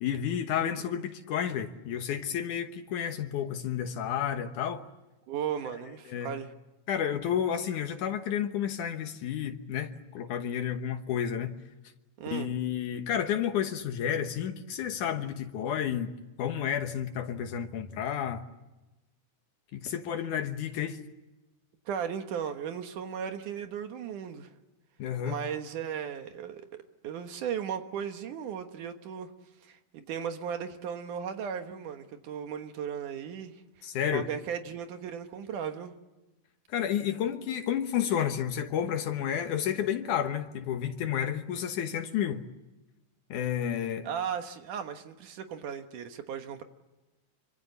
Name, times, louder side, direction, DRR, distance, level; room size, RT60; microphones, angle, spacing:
voice 1, 0.0-4.8 5.7-5.8 6.1-6.3 6.9-11.5 12.3-16.1 16.4-18.4 19.7-21.0 25.0-25.4 33.8-34.3 36.7-42.4 43.3-44.1, left 9 dB, 75° left, 2.7 m, -31 dB
voice 2, 5.3-6.5 12.2-12.5 21.9-24.5 25.2-26.7 27.0-29.3 29.6-33.9 34.1-35.9 44.0-46.6, right 8 dB, 80° right, 2.9 m, -36 dB
26.5 x 25.0 x 8.1 m
omnidirectional pair, 3.6 m